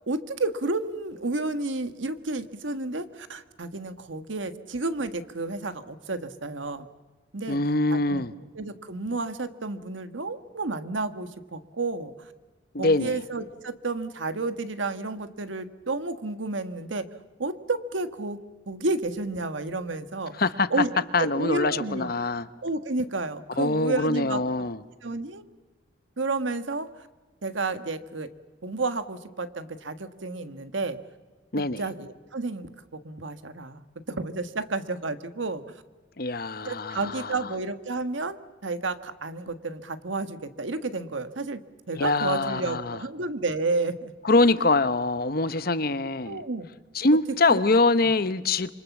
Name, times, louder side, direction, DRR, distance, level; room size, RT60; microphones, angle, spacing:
voice 1, 0.1-6.9 7.3-7.6 7.9-8.2 8.5-12.3 12.8-17.1 17.4-18.4 18.7-20.3 20.7-22.1 22.6-24.4 25.0-25.4 26.2-27.1 27.4-28.3 28.6-31.0 31.8-35.6 36.6-41.6 41.9-44.1 46.2-46.7 47.5-47.6 48.0-48.1, right 3 dB, 90° right, 1.5 m, -31 dB
voice 2, 7.5-8.3 12.7-13.2 20.4-20.7 21.1-22.5 23.5-24.8 31.5-31.8 36.2-37.4 42.0-43.0 44.2-46.4 46.9-48.7, left 2 dB, 55° left, 1.0 m, -24 dB
27.5 x 25.0 x 7.2 m
head